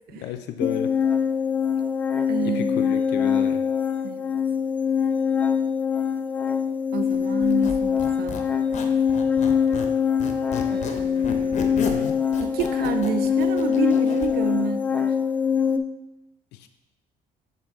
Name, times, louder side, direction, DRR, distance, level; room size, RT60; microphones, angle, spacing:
voice 1, 0.2-1.0 2.4-3.6 11.8-12.2 16.5-16.7, left 11 dB, 80° left, 8 dB, 0.4 m, -33 dB
sound 1, 0.6-15.8, left 7 dB, 10° left, 0.3 m, -23 dB
voice 2, 2.3-2.9 4.0-4.4 6.9-8.4 10.7-11.9 12.4-15.1, right 8 dB, 70° right, 9 dB, 0.4 m, -30 dB
Squeak, 7.4-9.9 10.2-14.3, left 5 dB, 45° left, 0.7 m, -33 dB
7.4 x 3.7 x 3.6 m, 0.96 s
cardioid pair, 110°, 17 cm